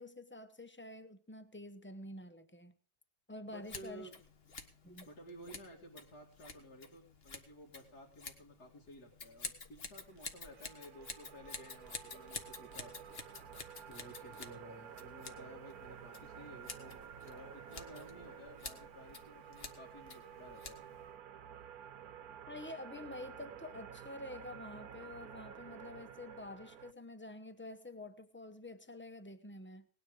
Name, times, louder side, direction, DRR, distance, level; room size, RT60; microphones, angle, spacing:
voice 1, 0.0-2.7 3.3-4.1 4.8-5.1 22.5-29.9, left 1 dB, 15° left, 0.3 m, -48 dB
voice 2, 3.4-4.2 5.0-13.0 13.9-17.0 17.3-20.8, equal, 65° left, 2.9 m, -54 dB
Scissors, 3.6-21.1, left 4 dB, 40° left, 1.5 m, -50 dB
sound 1, 10.1-26.9, right 8 dB, 65° right, 1.2 m, -52 dB
19.0 x 9.7 x 5.0 m
omnidirectional pair, 1.8 m